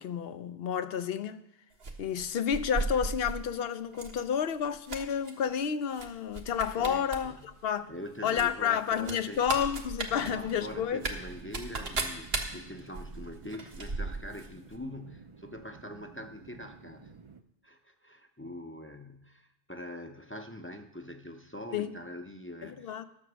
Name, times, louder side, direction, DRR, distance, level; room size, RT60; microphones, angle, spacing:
voice 1, 0.0-1.4 2.0-7.9 8.2-11.0 21.7-21.9 22.6-23.0, left 8 dB, 70° left, 0.8 m, -30 dB
sound 1, 1.8-3.4 3.9-4.2 4.5-5.3 5.9-6.1 6.3-7.2 7.5-7.6 8.3-14.5 14.7-14.8, right 3 dB, 70° right, 1.5 m, -36 dB
voice 2, 6.8-7.4 7.9-9.4 10.1-17.1 17.6-23.0, left 1 dB, 15° left, 0.6 m, -44 dB
sound 2, 10.1-17.4, right 4 dB, 35° right, 0.6 m, -51 dB
12.5 x 7.0 x 6.2 m
omnidirectional pair, 1.1 m